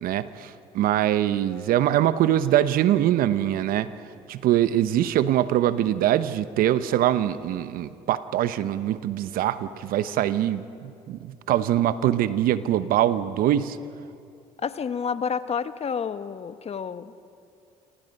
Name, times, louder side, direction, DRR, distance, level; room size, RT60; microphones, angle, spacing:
voice 1, 0.0-3.9 4.3-13.8, right 12 dB, 65° right, 14 dB, 0.9 m, -23 dB
voice 2, 14.6-17.1, left 6 dB, 40° left, 12 dB, 1.1 m, -29 dB
27.5 x 25.0 x 5.4 m, 2.5 s
hypercardioid pair, 65°, 16 cm